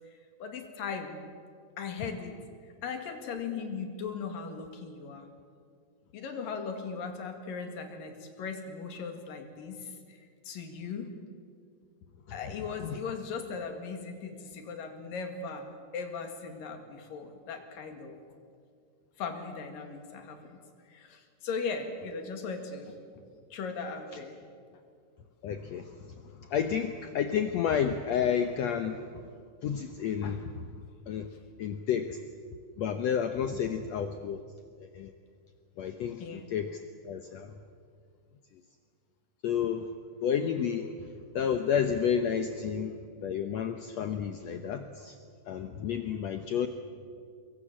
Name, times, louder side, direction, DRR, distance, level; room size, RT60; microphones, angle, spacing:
voice 1, 0.1-1.2 1.8-2.3 2.8-5.3 6.1-10.2 10.5-11.1 12.3-18.2 19.2-20.6 20.9-23.0 23.5-24.4 36.2-36.5, left 5 dB, 85° left, 5 dB, 3.8 m, -38 dB
voice 2, 25.4-29.3 29.6-30.7 31.1-31.3 31.6-32.2 32.8-34.4 34.8-35.1 35.8-37.5 38.5-38.6 39.4-39.9 40.2-45.2 45.5-46.7, left 8 dB, 70° left, 7 dB, 1.8 m, -31 dB
25.0 x 22.0 x 7.5 m, 2.2 s
omnidirectional pair, 3.8 m